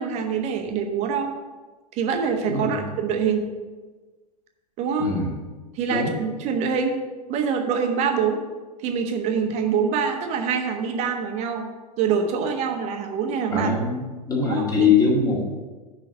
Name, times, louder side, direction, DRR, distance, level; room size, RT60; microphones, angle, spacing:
voice 1, 0.0-1.3 1.9-3.5 4.8-5.1 5.7-7.0 7.3-8.4 8.8-11.7 12.0-13.7 14.4-14.5 14.8-14.9, right 6 dB, 30° right, 4 dB, 1.2 m, -25 dB
voice 2, 2.5-2.8 5.0-5.3 5.9-6.1 13.5-14.0 14.3-15.5, left 4 dB, 15° left, -2 dB, 2.0 m, -22 dB
6.8 x 5.5 x 6.8 m, 1.3 s
figure-of-eight pair, 95°, 21 cm